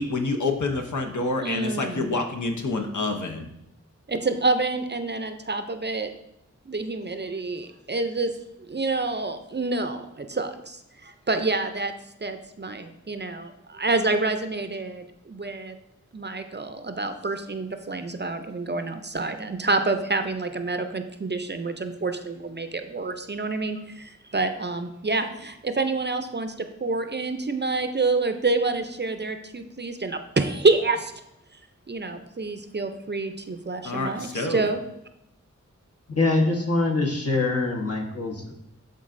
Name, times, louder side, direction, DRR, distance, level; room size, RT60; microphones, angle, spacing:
voice 1, 0.0-3.5 33.8-34.6, left 3 dB, 75° left, 4 dB, 0.8 m, -27 dB
voice 2, 1.4-2.2 4.1-6.1 6.7-8.3 8.7-11.9 12.2-15.8 16.1-31.1 31.9-34.8, right 3 dB, 35° right, 8 dB, 0.5 m, -27 dB
voice 3, 36.1-38.5, left 2 dB, 55° left, 0 dB, 1.2 m, -24 dB
11.0 x 3.9 x 2.5 m, 0.83 s
wide cardioid pair, 60°, 30 cm